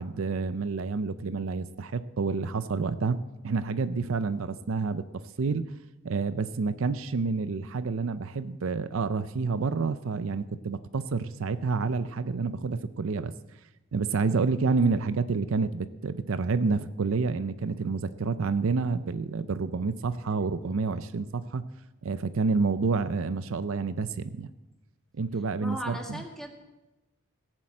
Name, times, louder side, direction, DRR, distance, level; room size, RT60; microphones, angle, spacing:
voice 1, 0.0-3.2 3.4-5.6 6.0-13.3 13.9-21.6 22.0-24.5 25.1-26.2, right 4 dB, 65° right, 12 dB, 0.5 m, -29 dB
voice 2, 25.6-26.5, equal, ahead, 1 dB, 1.8 m, -37 dB
17.0 x 7.6 x 7.5 m, 1.1 s
head